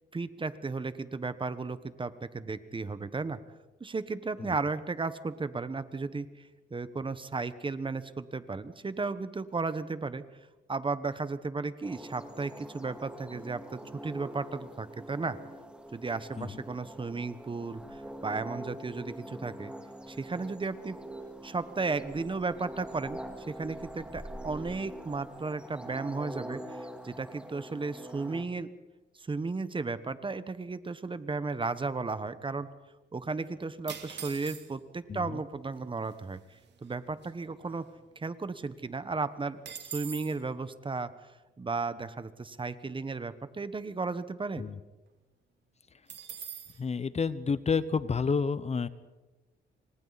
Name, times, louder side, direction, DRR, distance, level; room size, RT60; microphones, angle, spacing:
voice 1, 0.1-3.4 3.8-10.2 10.7-15.4 15.9-19.7 20.1-21.0 21.4-23.2 23.5-28.7 29.2-32.7 33.1-37.9 38.1-41.1 41.6-44.6, right 4 dB, 25° right, 12 dB, 1.3 m, -34 dB
sound 1, 11.8-28.4, right 1 dB, 5° right, 2.3 m, -44 dB
sound 2, 33.9-35.0 35.8-35.9 36.0-36.4 36.8-38.3 38.6-38.7 39.0-40.4 46.1-46.8, right 8 dB, 60° right, 2.9 m, -43 dB
voice 2, 46.8-48.9, left 5 dB, 35° left, 15 dB, 1.0 m, -29 dB
29.0 x 25.5 x 4.2 m, 1.1 s
cardioid pair, 90°, 20 cm